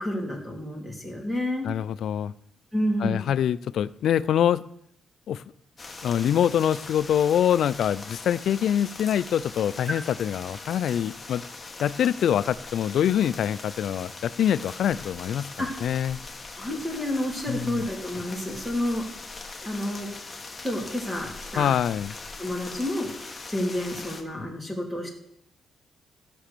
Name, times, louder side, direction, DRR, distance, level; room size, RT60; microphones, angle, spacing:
voice 1, 0.0-1.7 2.7-3.3 9.9-10.0 15.6-15.7 16.6-19.0 19.6-20.1 20.6-21.7 22.4-25.1, left 1 dB, 10° right, 0 dB, 2.6 m, -30 dB
voice 2, 1.6-2.3 3.0-4.6 5.3-5.4 6.0-11.4 11.8-15.5 15.8-16.2 17.5-17.8 21.6-22.1, left 9 dB, 75° left, 17 dB, 0.4 m, -24 dB
sound 1, 5.8-24.2, left 3 dB, 20° left, 1.3 m, -41 dB
14.5 x 6.2 x 6.7 m, 0.74 s
cardioid pair, 140°, 0 cm